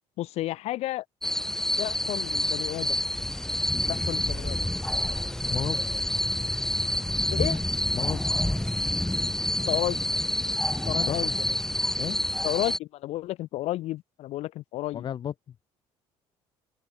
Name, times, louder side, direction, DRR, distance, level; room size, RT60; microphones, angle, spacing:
voice 1, 0.2-1.0 1.8-3.0 3.9-4.6 7.3-7.6 9.7-10.0 10.9-11.3 12.4-15.0, left 16 dB, 70° left, 0.8 m, -31 dB
sound 1, 1.2-12.8, left 1 dB, 5° left, 0.7 m, -28 dB
voice 2, 5.5-6.0 7.9-8.4 11.1-11.3 12.0-12.2 14.9-15.5, left 9 dB, 40° left, 0.8 m, -34 dB
cardioid pair, 125°, 11 cm